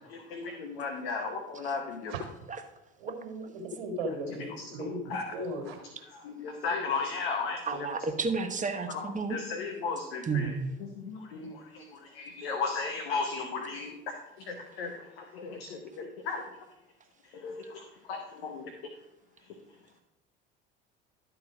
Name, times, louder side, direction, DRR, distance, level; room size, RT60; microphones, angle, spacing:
voice 1, 0.1-2.1 4.6-5.2 6.1-7.9 8.9-10.5 10.8-14.2 14.5-16.4 17.3-18.7, left 4 dB, 75° left, 4 dB, 0.8 m, -35 dB
voice 2, 3.0-5.0 5.3-5.8, right 1 dB, 75° right, 4 dB, 1.5 m, -36 dB
voice 3, 7.7-9.4 10.3-10.6, right 4 dB, 25° right, 6 dB, 1.1 m, -31 dB
11.5 x 3.9 x 4.9 m, 0.93 s
hypercardioid pair, 65°, 29 cm